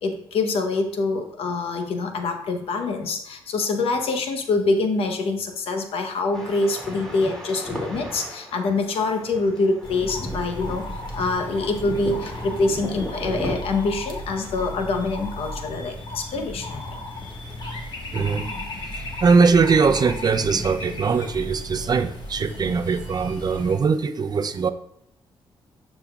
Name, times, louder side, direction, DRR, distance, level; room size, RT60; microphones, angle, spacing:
voice 1, 0.0-10.8 11.1-16.9, left 3 dB, 80° left, 5 dB, 1.0 m, -25 dB
sound 1, 6.3-13.5, equal, 5° left, 2.5 m, -36 dB
sound 2, 9.8-23.7, left 1 dB, 50° left, 1.5 m, -35 dB
voice 2, 18.1-18.5 19.2-24.7, right 5 dB, 45° right, 10 dB, 0.6 m, -21 dB
12.0 x 4.3 x 2.4 m, 0.72 s
cardioid pair, 75°, 10 cm